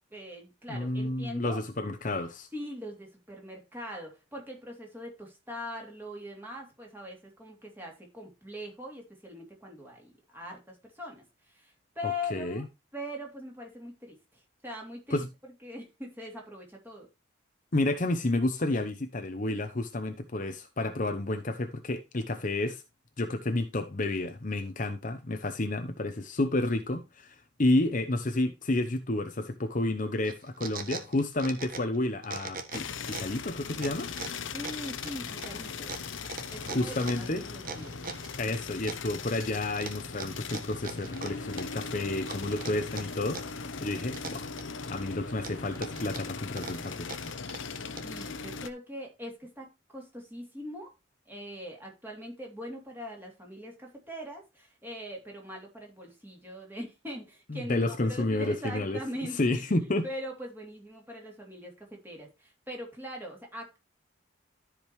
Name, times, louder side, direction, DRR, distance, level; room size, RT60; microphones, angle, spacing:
voice 1, 0.1-1.6 2.5-12.7 12.9-15.3 15.6-17.1 24.7-24.9 34.5-36.0 36.5-38.0 48.0-50.9 51.3-63.8, left 1 dB, 10° right, 3.0 m, -41 dB
voice 2, 0.7-2.5 12.3-12.6 15.1-15.3 17.7-22.8 23.2-34.1 36.6-37.4 38.4-44.5 44.8-47.1 57.5-59.0 59.3-60.0, left 2 dB, 40° left, 0.8 m, -30 dB
sound 1, 30.2-32.0 32.2-33.4 33.8-38.3 38.9-39.5 39.8-41.9 42.3-43.6 43.9-44.9 45.3-48.2, right 4 dB, 45° right, 1.3 m, -40 dB
sound 2, 32.7-48.7, left 5 dB, 70° left, 0.8 m, -39 dB
13.5 x 5.1 x 3.1 m
head